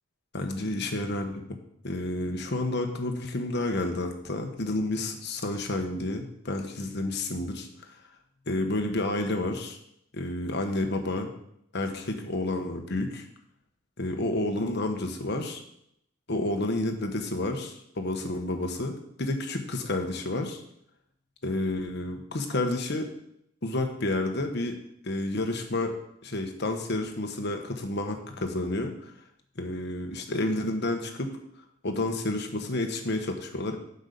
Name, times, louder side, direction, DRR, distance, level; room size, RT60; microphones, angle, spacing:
voice 1, 0.3-1.4 1.8-7.7 8.5-9.8 10.1-11.3 11.7-13.3 14.0-15.6 16.3-18.9 19.2-20.6 21.4-23.1 23.6-24.8 25.0-25.9 26.2-29.1 29.6-31.3 31.8-33.8, left 2 dB, 55° left, 4 dB, 1.3 m, -30 dB
8.1 x 5.5 x 6.9 m, 0.75 s
head